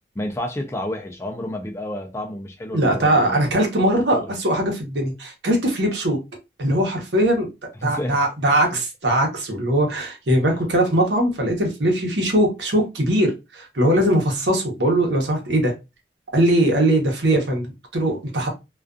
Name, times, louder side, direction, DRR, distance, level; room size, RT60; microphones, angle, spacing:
voice 1, 0.2-3.4 4.1-4.4 7.8-8.2 8.5-8.6, left 1 dB, 15° left, 0.4 m, -30 dB
voice 2, 2.7-6.2 6.6-7.5 7.8-15.7 16.3-18.5, right 1 dB, 80° right, 0.9 m, -20 dB
2.4 x 2.3 x 2.4 m
head